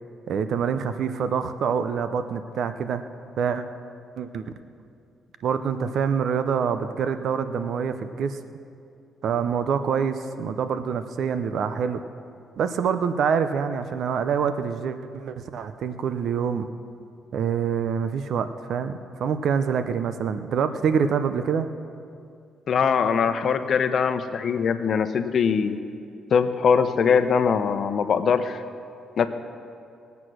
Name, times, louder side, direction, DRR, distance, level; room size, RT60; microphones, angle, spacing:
voice 1, 0.3-3.0 3.4-3.7 4.2-4.5 5.4-8.4 9.2-12.0 12.6-16.7 17.3-21.7, right 6 dB, 65° right, 10 dB, 0.7 m, -26 dB
voice 2, 22.7-25.8 26.3-28.6 29.2-29.3, left 6 dB, 55° left, 10 dB, 0.8 m, -22 dB
20.0 x 8.2 x 6.3 m, 2.5 s
cardioid pair, 90°, 0 cm